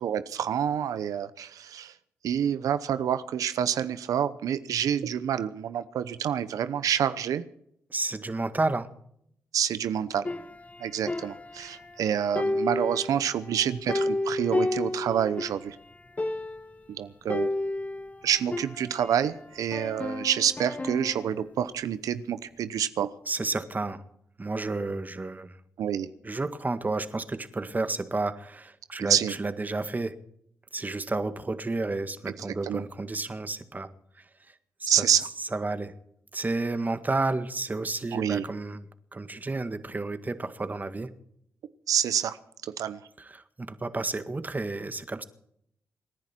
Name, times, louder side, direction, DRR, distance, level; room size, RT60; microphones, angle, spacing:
voice 1, 0.0-1.9 2.2-7.4 9.5-10.3 10.8-15.8 17.0-17.5 18.2-23.1 25.8-26.1 29.0-29.3 32.6-32.8 34.9-35.3 38.1-38.4 41.9-42.4 42.8-43.0, right 9 dB, 75° right, 13 dB, 0.8 m, -27 dB
voice 2, 7.9-8.9 23.3-24.0 24.4-25.6 26.2-30.1 30.7-33.9 34.5-34.6 34.8-35.1 35.4-35.9 36.3-38.8 39.1-41.1 43.2-45.2, right 3 dB, 30° right, 10 dB, 1.8 m, -31 dB
sound 1, 10.3-12.0 12.4-15.6 15.9-16.8 17.3-19.3 19.7-21.4, left 2 dB, 25° left, 1.4 m, -32 dB
27.5 x 10.5 x 4.5 m, 0.71 s
supercardioid pair, 50°, 6 cm